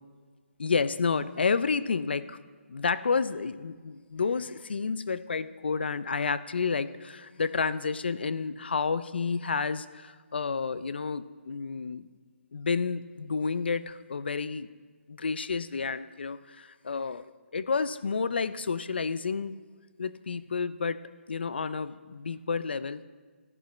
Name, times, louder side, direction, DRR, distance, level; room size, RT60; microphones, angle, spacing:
voice 1, 0.6-2.4 2.7-12.1 12.5-14.7 15.1-19.6 20.0-23.0, left 5 dB, 50° left, 15 dB, 0.4 m, -30 dB
15.5 x 10.5 x 3.1 m, 1.5 s
hypercardioid pair, 175°, 7 cm